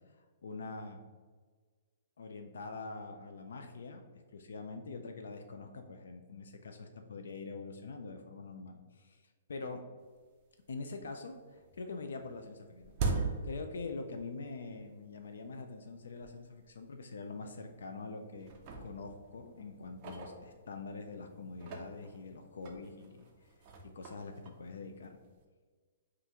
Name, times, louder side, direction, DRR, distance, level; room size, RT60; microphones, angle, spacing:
voice 1, 0.2-1.0 2.2-9.8 10.7-12.9 13.4-18.5 18.8-23.5 23.9-25.2, left 3 dB, 75° left, 5 dB, 0.4 m, -44 dB
sound 1, 10.2-10.3 10.7-11.3 11.5-14.4 14.7-14.8 15.6-15.7 16.2-16.3 16.6-16.8 17.5-18.0 18.4-21.0 21.5-25.4, right 4 dB, 20° right, 0.4 m, -41 dB
5.4 x 2.5 x 2.9 m, 1.5 s
hypercardioid pair, 180°, 0 cm